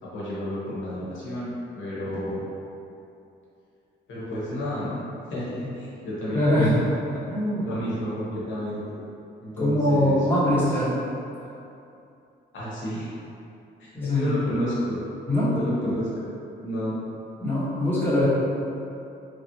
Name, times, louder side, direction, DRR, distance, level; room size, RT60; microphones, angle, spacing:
voice 1, 0.0-2.4 4.1-6.9 7.6-9.0 9.4-10.6 12.5-13.1 13.8-15.0 15.5-16.3 16.6-17.0, equal, 70° left, -9 dB, 1.0 m, -31 dB
voice 2, 6.3-6.9 7.3-7.7 9.6-11.0 13.9-14.3 15.3-15.5 17.4-18.3, left 1 dB, 10° left, -11 dB, 1.1 m, -22 dB
3.1 x 2.4 x 2.8 m, 2.7 s
cardioid pair, 90°, 20 cm